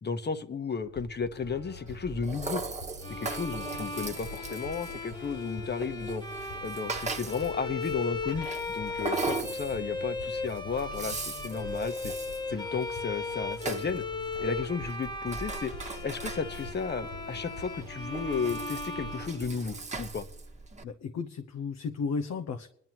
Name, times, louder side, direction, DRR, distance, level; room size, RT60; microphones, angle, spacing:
voice 1, 0.0-2.6 3.2-6.2 6.6-12.1 12.5-14.0 14.4-15.7 16.0-20.3, left 5 dB, 35° left, 9 dB, 1.2 m, -33 dB
sound 1, 0.8-19.8, left 2 dB, 85° left, 4.5 m, -46 dB
Rattle (instrument), 1.9-20.8, right 4 dB, 25° right, 1.4 m, -40 dB
Bowed string instrument, 3.0-20.0, left 3 dB, 15° left, 1.4 m, -37 dB
voice 2, 20.8-22.7, left 5 dB, 65° left, 6 dB, 1.0 m, -34 dB
22.5 x 11.0 x 3.0 m, 0.68 s
cardioid pair, 90°, 30 cm